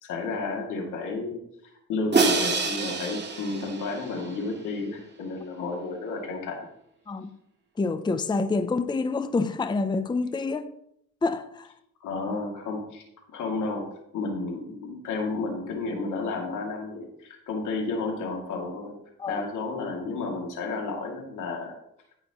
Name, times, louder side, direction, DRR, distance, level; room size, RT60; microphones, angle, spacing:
voice 1, 0.0-1.4 1.9-6.6 12.0-13.0 13.3-13.8 14.1-18.9 19.3-21.8, left 3 dB, 80° left, 2.5 m, -32 dB
Crash cymbal, 2.1-4.3, right 4 dB, 35° right, 1.9 m, -26 dB
voice 2, 7.8-10.7 11.2-11.7 19.2-19.4, left 3 dB, 15° left, 0.5 m, -27 dB
16.5 x 5.8 x 3.0 m
cardioid pair, 90°, 30 cm